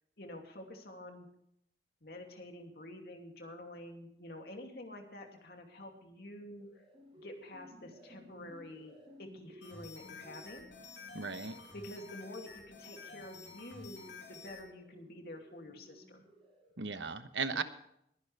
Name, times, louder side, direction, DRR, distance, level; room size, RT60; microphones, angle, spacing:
voice 1, 0.2-1.3 2.0-6.9 7.2-10.7 11.7-16.2 17.5-17.6, left 1 dB, 55° left, 3 dB, 2.7 m, -48 dB
sound 1, 6.4-16.9, equal, 30° right, 5.2 m, -58 dB
sound 2, 9.6-14.6, left 4 dB, 75° left, 3.4 m, -51 dB
voice 2, 11.1-11.6 16.8-17.6, right 4 dB, 80° right, 10 dB, 1.1 m, -36 dB
21.5 x 11.0 x 3.4 m, 0.74 s
head